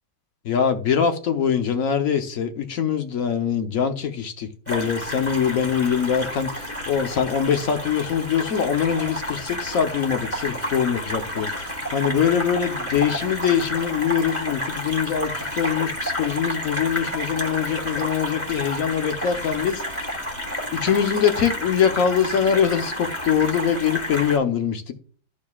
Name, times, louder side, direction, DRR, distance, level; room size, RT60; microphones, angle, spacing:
voice 1, 0.4-11.5 11.9-19.8 20.7-24.9, left 8 dB, 55° left, 1.2 m, -23 dB
sound 1, 4.7-24.4, equal, 10° left, 1.3 m, -30 dB
14.0 x 4.8 x 2.4 m
omnidirectional pair, 2.0 m